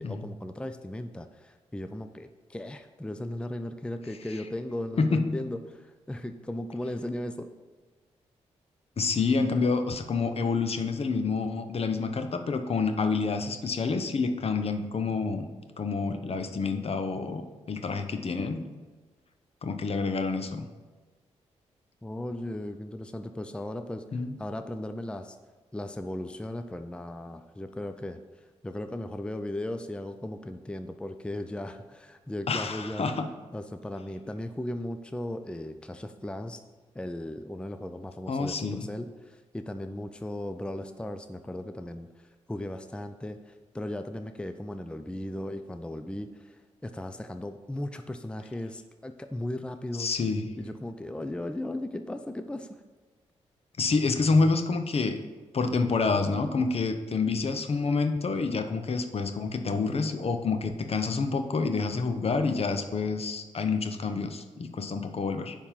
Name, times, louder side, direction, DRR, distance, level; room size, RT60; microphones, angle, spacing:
voice 1, 0.0-7.5 22.0-25.4 25.7-28.2 28.6-33.1 33.5-36.6 36.9-42.1 42.5-50.1 50.6-52.8, left 1 dB, 10° left, 8 dB, 0.5 m, -37 dB
voice 2, 5.0-5.4 9.0-15.5 15.8-18.6 19.6-20.6 24.1-24.4 32.5-33.3 38.3-38.9 50.0-50.5 53.8-55.2 55.5-65.5, left 4 dB, 50° left, 7 dB, 0.8 m, -28 dB
9.8 x 3.6 x 5.7 m, 1.3 s
supercardioid pair, 45°, 13 cm